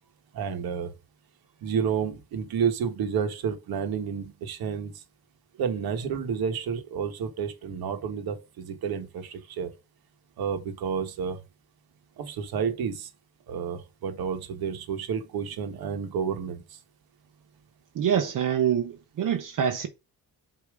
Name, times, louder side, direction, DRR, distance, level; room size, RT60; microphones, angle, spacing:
voice 1, 0.3-0.9 1.6-5.0 5.6-9.7 10.4-11.4 12.2-13.1 13.5-16.8, right 7 dB, 75° right, 1.4 m, -30 dB
voice 2, 17.9-19.9, right 9 dB, 55° right, 0.9 m, -25 dB
8.5 x 3.0 x 4.8 m
cardioid pair, 135°, 37 cm